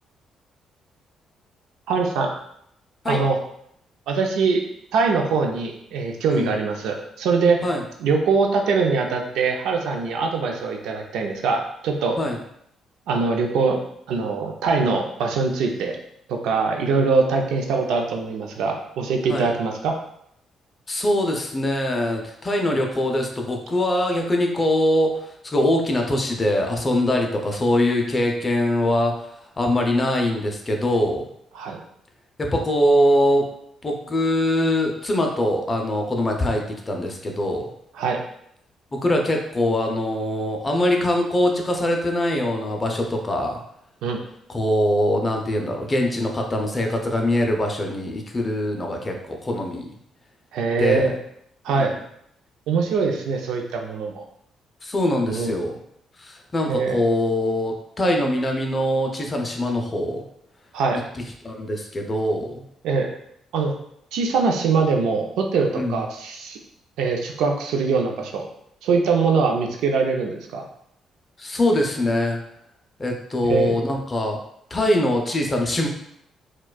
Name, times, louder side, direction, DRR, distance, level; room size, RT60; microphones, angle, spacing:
voice 1, 1.9-2.3 3.0-3.4 4.1-4.6 4.9-7.6 8.0-12.2 13.1-13.8 14.1-16.0 16.3-19.9 31.5-31.8 37.9-38.2 44.0-44.2 50.5-51.1 51.6-51.9 52.7-54.2 55.3-55.6 56.7-57.0 60.7-61.0 62.8-63.2 63.5-63.7 64.1-66.6 67.0-68.4 68.8-70.6 73.5-73.8, right 4 dB, 85° right, 2 dB, 0.5 m, -22 dB
voice 2, 20.9-25.1 25.4-29.1 29.6-31.2 32.4-33.5 33.8-37.6 38.9-43.6 44.5-49.9 50.8-51.1 51.8-51.9 54.8-55.7 56.2-60.2 61.4-62.6 65.8-66.0 71.4-72.4 73.0-74.4 74.7-75.9, left 1 dB, 30° left, 2 dB, 0.5 m, -22 dB
4.4 x 2.3 x 2.3 m, 0.73 s
cardioid pair, 90°, 0 cm